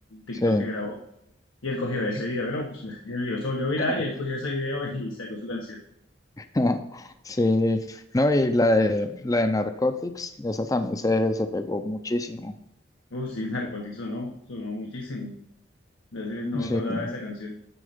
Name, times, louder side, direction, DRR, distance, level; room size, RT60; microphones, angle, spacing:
voice 1, 0.1-0.9 1.6-5.8 13.1-15.3 16.1-17.5, left 2 dB, 90° left, 0 dB, 1.1 m, -31 dB
voice 2, 6.4-12.5 16.5-17.1, left 1 dB, 15° left, 9 dB, 0.4 m, -25 dB
10.0 x 4.4 x 5.1 m, 0.79 s
head